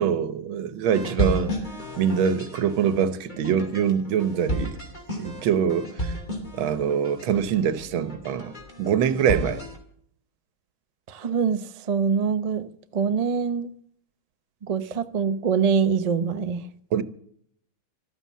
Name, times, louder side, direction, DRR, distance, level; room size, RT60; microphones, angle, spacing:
voice 1, 0.0-1.5 2.0-4.8 5.2-6.1 6.6-8.5 8.8-9.6 16.9-17.0, right 8 dB, 85° right, 1.7 m, -24 dB
sound 1, 0.9-9.8, equal, 20° left, 2.7 m, -33 dB
voice 2, 11.1-13.7 14.6-16.6, right 6 dB, 65° right, 0.3 m, -24 dB
14.5 x 13.0 x 7.4 m
omnidirectional pair, 2.1 m